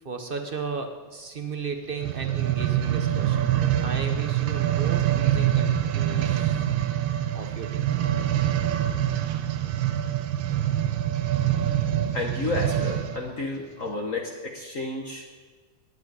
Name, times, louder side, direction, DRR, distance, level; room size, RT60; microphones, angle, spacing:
voice 1, 0.0-3.5 3.8-6.6 7.3-7.8, right 5 dB, 55° right, 5 dB, 0.6 m, -35 dB
sound 1, 1.9-13.3 13.9-14.0, right 11 dB, 75° right, 1.4 m, -25 dB
voice 2, 12.1-15.3, left 3 dB, 50° left, 1 dB, 1.2 m, -31 dB
9.5 x 7.8 x 9.5 m, 1.4 s
omnidirectional pair, 2.2 m